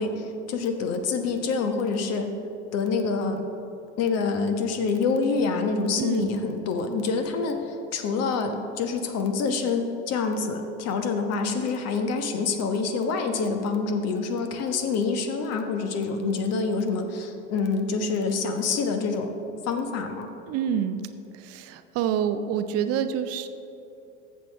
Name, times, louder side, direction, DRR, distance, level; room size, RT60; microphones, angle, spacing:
voice 1, 0.0-2.3 2.7-3.4 4.0-19.3 19.6-20.3, left 4 dB, 45° left, 6 dB, 1.2 m, -26 dB
voice 2, 6.0-6.3 20.5-21.0 21.4-23.5, right 8 dB, 45° right, 10 dB, 0.6 m, -27 dB
14.0 x 7.5 x 3.4 m, 2.9 s
hypercardioid pair, 75°, 36 cm